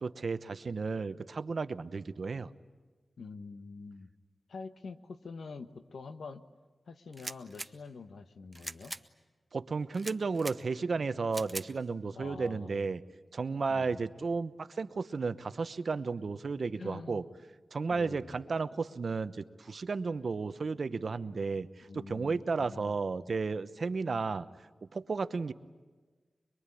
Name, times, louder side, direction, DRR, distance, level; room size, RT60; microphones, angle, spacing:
voice 1, 0.0-2.5 9.5-13.0 13.3-17.2 17.7-24.5 24.8-25.5, right 4 dB, 60° right, 12 dB, 0.9 m, -33 dB
voice 2, 3.2-4.1 4.5-6.4 6.9-8.9 12.2-12.9 13.7-14.1 16.8-17.3 17.9-18.4 21.8-22.9, left 4 dB, 85° left, 9 dB, 1.3 m, -46 dB
sound 1, 7.1-7.7 8.5-9.0 9.9-10.6 11.3-11.7, right 2 dB, 20° right, 1.0 m, -41 dB
24.0 x 23.0 x 9.9 m, 1.3 s
wide cardioid pair, 90°, 0 cm